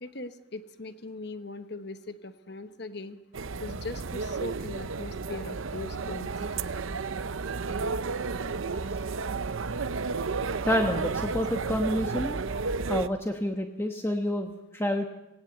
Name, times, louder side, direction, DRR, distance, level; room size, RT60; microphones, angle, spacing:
voice 1, 0.0-3.2 3.6-6.7, left 2 dB, 50° left, 10 dB, 1.1 m, -40 dB
sound 1, 3.3-13.1, right 4 dB, 75° right, 0.7 m, -32 dB
voice 2, 10.6-12.4 12.9-15.1, equal, 10° left, 4 dB, 1.1 m, -28 dB
19.0 x 17.5 x 8.1 m, 0.95 s
head